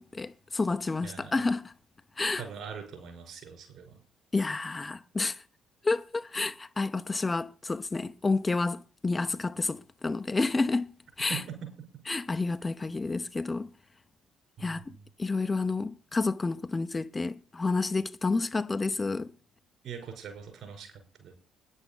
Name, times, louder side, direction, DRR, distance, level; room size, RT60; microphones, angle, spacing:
voice 1, 0.0-1.7 2.2-2.4 4.3-5.4 5.8-10.9 11.2-11.4 12.1-13.7 14.6-14.9 15.2-19.3, left 3 dB, 25° left, 0.6 m, -30 dB
voice 2, 1.0-1.4 2.4-4.0 11.3-11.4 14.6-15.1 19.8-20.9 21.2-21.3, right 7 dB, 55° right, 5.1 m, -42 dB
9.8 x 8.1 x 7.0 m
figure-of-eight pair, 50°, 0 cm